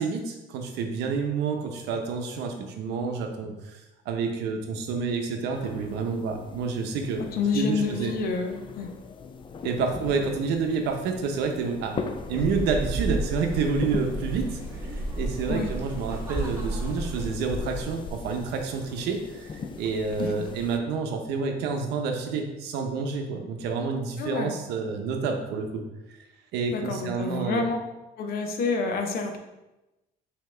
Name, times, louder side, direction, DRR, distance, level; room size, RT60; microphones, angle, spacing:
voice 1, 0.0-3.8 4.1-7.3 7.5-8.1 9.6-12.0 12.3-25.8 26.5-27.6, right 5 dB, 90° right, 4 dB, 0.7 m, -29 dB
sound 1, 5.5-20.8, left 4 dB, 30° left, 0.4 m, -39 dB
voice 2, 7.3-8.9 15.5-15.7 20.2-20.4 24.2-24.5 26.7-27.8 28.2-29.4, left 4 dB, 65° left, 5 dB, 0.8 m, -28 dB
sound 2, 12.3-17.3, right 2 dB, 15° right, 0.9 m, -32 dB
5.6 x 2.9 x 3.3 m, 1.0 s
cardioid pair, 110°, 17 cm